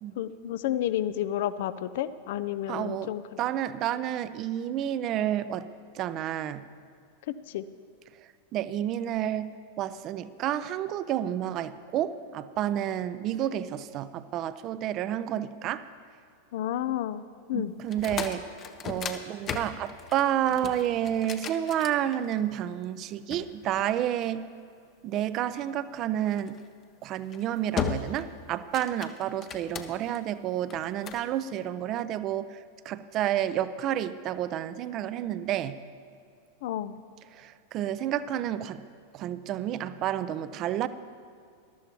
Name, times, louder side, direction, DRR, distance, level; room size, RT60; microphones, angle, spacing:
voice 1, 0.2-3.4 7.5-7.6 16.5-17.7 36.6-36.9, left 11 dB, 55° left, 15 dB, 0.5 m, -31 dB
voice 2, 2.7-3.1 3.4-5.7 5.9-6.6 8.5-15.8 17.5-18.5 18.8-24.5 25.0-26.6 27.0-32.6 32.8-35.8 37.3-38.8 39.1-40.9, right 11 dB, 35° right, 14 dB, 0.5 m, -30 dB
sound 1, 17.8-22.6 23.3-24.6 26.4-26.7 27.2-27.4 27.8-28.3 28.6-30.2 30.7-31.3, left 7 dB, 30° left, 0.8 m, -36 dB
21.0 x 12.5 x 3.0 m, 2.3 s
figure-of-eight pair, 90°, 0 cm